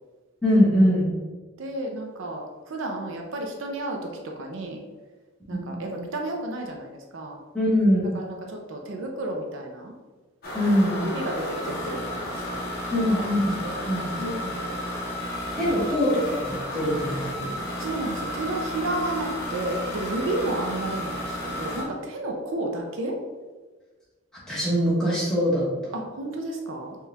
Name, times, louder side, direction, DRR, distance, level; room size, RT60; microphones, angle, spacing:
voice 1, 0.4-1.1 5.5-5.7 7.5-8.1 10.5-11.1 12.9-13.6 13.9-14.6 15.6-17.5 24.5-25.7, equal, 5° left, -8 dB, 1.0 m, -23 dB
voice 2, 1.6-4.8 5.5-7.4 8.1-9.9 10.9-13.3 13.7-14.9 15.6-15.7 17.8-23.2 25.9-27.0, right 1 dB, 60° right, 1 dB, 0.5 m, -32 dB
sound 1, 10.4-21.8, left 1 dB, 45° left, 0.9 m, -32 dB
4.4 x 2.3 x 3.3 m, 1.3 s
head